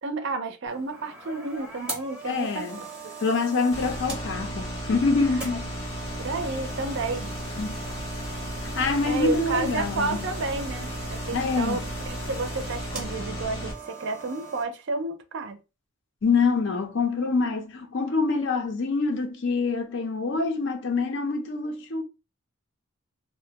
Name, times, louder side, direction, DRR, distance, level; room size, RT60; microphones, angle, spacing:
voice 1, 0.0-2.7 3.0-3.1 6.2-7.3 9.0-15.6, right 3 dB, 55° right, 0.4 m, -31 dB
sound 1, 0.7-14.6, right 4 dB, 5° right, 0.6 m, -40 dB
voice 2, 2.2-2.8 3.2-5.7 7.6-7.8 8.7-10.3 11.3-11.9 16.2-22.0, left 4 dB, 55° left, 0.5 m, -25 dB
sound 2, 3.7-13.7, left 1 dB, 85° left, 1.0 m, -35 dB
2.5 x 2.1 x 2.7 m
head